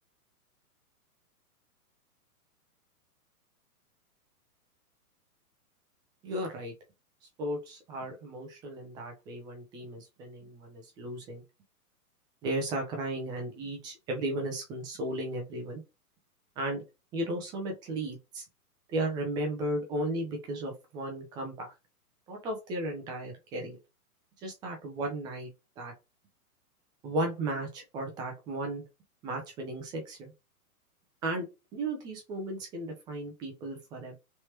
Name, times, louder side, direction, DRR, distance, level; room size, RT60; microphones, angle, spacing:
voice 1, 6.2-6.7 7.4-11.4 12.4-15.8 16.6-16.8 17.1-18.4 18.9-21.7 22.3-23.8 24.4-25.5 25.8-25.9 27.0-28.8 29.2-30.3 31.2-31.4 31.7-34.1, right 1 dB, 10° right, 0.4 m, -35 dB
3.3 x 2.9 x 2.9 m
hypercardioid pair, 120°, 46 cm